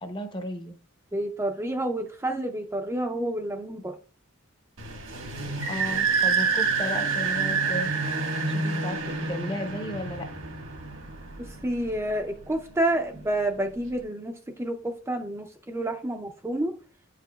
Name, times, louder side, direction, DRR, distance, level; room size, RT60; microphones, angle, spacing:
voice 1, 0.0-0.7 5.7-7.9 8.3-10.3, equal, 25° left, 7 dB, 0.7 m, -34 dB
voice 2, 1.1-3.9 11.5-16.7, right 1 dB, 15° right, 4 dB, 0.4 m, -29 dB
sound 1, 4.8-12.1, right 4 dB, 80° right, 1.5 m, -28 dB
8.8 x 4.9 x 2.3 m, 0.38 s
head